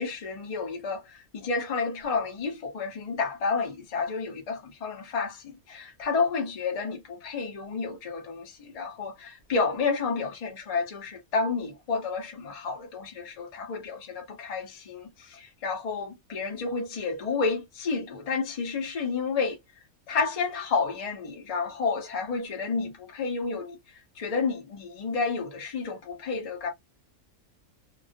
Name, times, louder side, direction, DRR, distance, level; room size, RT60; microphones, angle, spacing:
voice 1, 0.0-19.6 20.1-23.8 24.2-26.7, left 4 dB, 85° left, 0.3 m, -30 dB
2.3 x 2.2 x 2.4 m
omnidirectional pair, 1.5 m